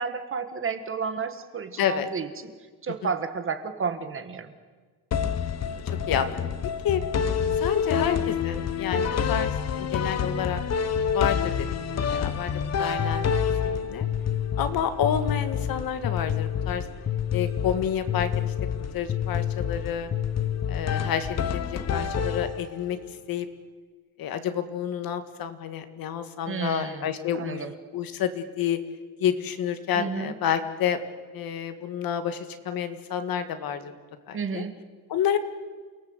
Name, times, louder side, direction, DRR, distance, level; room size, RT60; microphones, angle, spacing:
voice 1, 0.0-2.5 2.8-4.5 26.5-27.1 27.4-27.7 30.0-30.3 34.3-34.7, right 5 dB, 30° right, 9 dB, 1.7 m, -31 dB
voice 2, 1.8-2.1 5.6-6.4 6.8-7.0 7.6-10.6 11.1-11.7 12.1-13.4 13.6-14.1 14.6-16.9 17.3-18.5 18.9-20.1 20.7-23.0 23.3-23.5 24.2-27.6 27.9-28.8 29.2-31.0 31.3-33.9 34.3-34.6 35.1-35.4, left 9 dB, 55° left, 9 dB, 1.9 m, -29 dB
sound 1, 5.1-22.9, left 7 dB, 40° left, 1.3 m, -28 dB
29.0 x 19.0 x 8.0 m, 1.5 s
cardioid pair, 160°, 41 cm